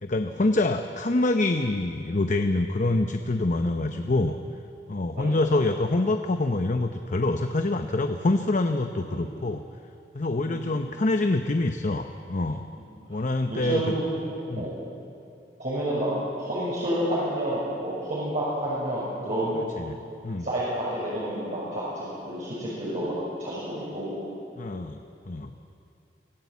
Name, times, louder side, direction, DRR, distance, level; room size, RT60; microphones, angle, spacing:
voice 1, 0.0-4.4 4.9-9.6 10.1-12.6 13.1-13.9 14.5-14.7 19.8-20.0 20.2-20.5 24.6-25.5, left 2 dB, 45° left, 6 dB, 0.8 m, -26 dB
voice 2, 12.8-13.2 13.5-14.9 15.6-16.1 16.4-19.8 20.4-24.2, right 1 dB, 50° right, -9 dB, 6.2 m, -30 dB
24.5 x 15.0 x 8.3 m, 2.7 s
head